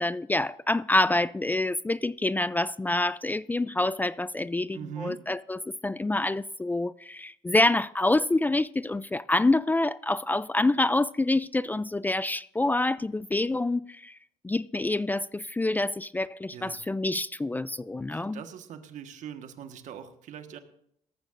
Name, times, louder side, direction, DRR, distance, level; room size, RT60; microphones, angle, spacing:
voice 1, 0.0-14.2 14.4-18.4, left 2 dB, 15° left, 0.3 m, -27 dB
voice 2, 4.7-5.2 16.5-16.8 18.1-20.6, right 8 dB, 70° right, 1.5 m, -41 dB
17.5 x 14.0 x 2.6 m
cardioid pair, 85°, 13 cm